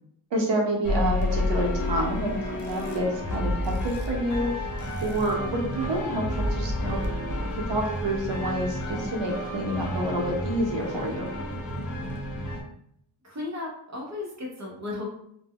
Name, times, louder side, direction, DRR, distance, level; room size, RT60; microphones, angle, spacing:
voice 1, 0.3-4.5 5.0-6.2 6.5-7.0 7.7-11.3, right 1 dB, 80° right, -1 dB, 0.8 m, -28 dB
sound 1, 0.8-12.6, left 1 dB, 45° left, 0.6 m, -30 dB
voice 2, 13.2-15.1, left 3 dB, 40° right, -2 dB, 0.7 m, -35 dB
2.2 x 2.0 x 3.5 m, 0.71 s
wide cardioid pair, 115°, 42 cm